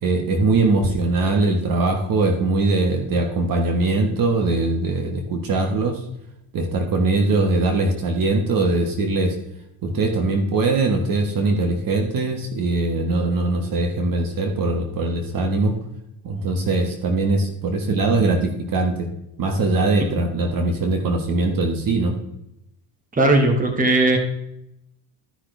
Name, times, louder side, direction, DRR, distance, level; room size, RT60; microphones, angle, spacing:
voice 1, 0.0-6.0 6.5-9.3 9.8-15.7 16.2-19.1 19.4-22.1, right 3 dB, 50° right, 4 dB, 1.5 m, -21 dB
voice 2, 23.1-24.2, right 2 dB, 20° right, 4 dB, 1.8 m, -17 dB
13.0 x 5.9 x 3.4 m, 0.82 s
cardioid pair, 105°, 44 cm